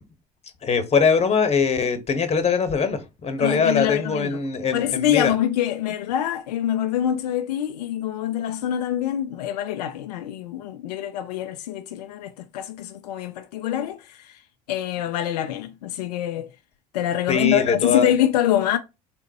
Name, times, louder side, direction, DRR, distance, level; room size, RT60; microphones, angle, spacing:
voice 1, 0.6-5.3 17.3-18.1, left 5 dB, 30° left, 1.2 m, -22 dB
voice 2, 3.4-4.4 4.7-14.4 14.7-16.5 16.9-18.8, left 11 dB, 85° left, 0.5 m, -25 dB
4.2 x 3.7 x 2.8 m
hypercardioid pair, 70°, 20 cm